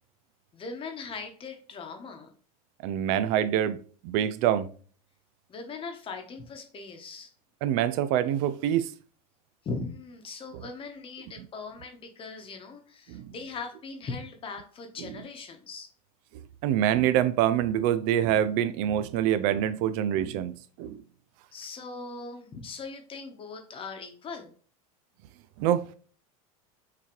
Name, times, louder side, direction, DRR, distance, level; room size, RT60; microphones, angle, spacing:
voice 1, 0.5-2.3 5.5-7.3 9.6-15.9 21.5-24.5, left 4 dB, 30° left, 1.0 m, -40 dB
voice 2, 2.8-3.8 4.0-4.7 7.6-8.9 13.1-13.3 16.6-21.0 25.6-25.9, right 10 dB, 60° right, 0.4 m, -25 dB
5.9 x 2.9 x 3.0 m
supercardioid pair, 120°, 19 cm